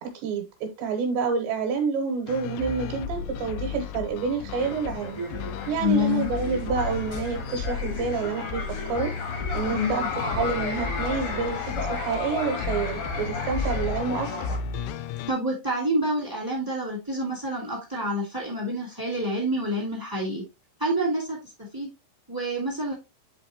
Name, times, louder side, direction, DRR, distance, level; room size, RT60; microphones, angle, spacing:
voice 1, 0.0-5.2 5.7-9.1 9.5-14.3, right 5 dB, 75° right, 4 dB, 2.8 m, -28 dB
sound 1, 2.3-15.3, left 6 dB, 85° left, 3.0 m, -34 dB
sound 2, 4.6-14.6, left 3 dB, 65° left, 1.6 m, -34 dB
voice 2, 5.8-6.3 9.7-10.1 15.3-20.4 20.8-21.9 22.3-22.9, left 1 dB, 15° right, -1 dB, 0.6 m, -27 dB
10.5 x 4.0 x 2.9 m, 0.25 s
omnidirectional pair, 5.8 m